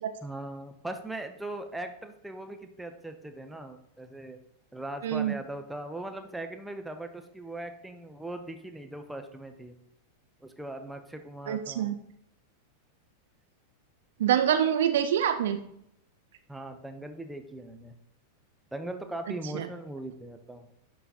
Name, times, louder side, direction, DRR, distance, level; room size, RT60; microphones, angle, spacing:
voice 1, 0.2-4.4 4.7-9.7 10.4-11.9 16.5-18.0 18.7-20.7, right 1 dB, 5° right, 6 dB, 0.6 m, -40 dB
voice 2, 5.0-5.3 11.5-12.0 14.2-15.6 19.5-19.7, right 10 dB, 60° right, 8 dB, 0.5 m, -25 dB
11.0 x 3.9 x 2.8 m, 0.73 s
figure-of-eight pair, 90°, 0 cm